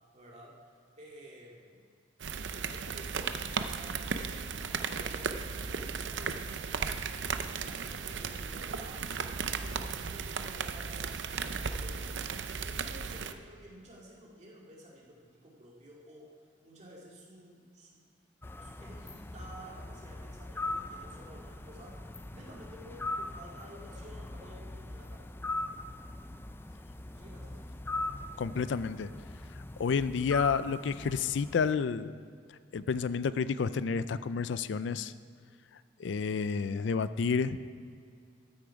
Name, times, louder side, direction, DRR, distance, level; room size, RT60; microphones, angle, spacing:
voice 1, 0.1-0.7 1.0-1.8 2.5-4.5 4.9-6.7 7.6-9.1 9.5-12.1 12.6-16.4 16.6-18.0 18.6-22.0 22.3-25.3 27.1-27.6, equal, 40° right, -3 dB, 2.3 m, -52 dB
sound 1, 2.2-13.3, right 5 dB, 80° right, 0.6 m, -36 dB
sound 2, 18.4-31.7, left 2 dB, 10° left, 0.4 m, -40 dB
voice 2, 28.4-29.1 29.8-32.1 32.7-35.1 36.0-37.6, left 5 dB, 80° left, 15 dB, 0.4 m, -30 dB
13.0 x 8.9 x 4.8 m, 2.3 s
head